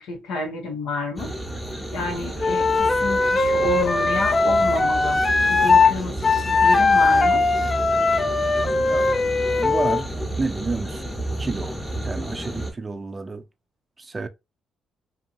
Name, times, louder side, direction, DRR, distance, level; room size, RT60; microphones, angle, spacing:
voice 1, 0.0-1.3 1.9-5.2 5.5-7.4, left 3 dB, 85° left, 1.2 m, -30 dB
sound 1, 1.2-12.7, right 1 dB, 5° left, 1.0 m, -31 dB
Wind instrument woodwind instrument, 2.4-5.9 6.2-10.0, left 3 dB, 30° left, 0.4 m, -19 dB
voice 2, 8.7-9.1 9.5-10.1 10.4-11.1 11.4-11.8 12.0-13.4 14.0-14.3, right 3 dB, 30° right, 0.4 m, -30 dB
2.6 x 2.6 x 2.5 m
cardioid pair, 90°, 0 cm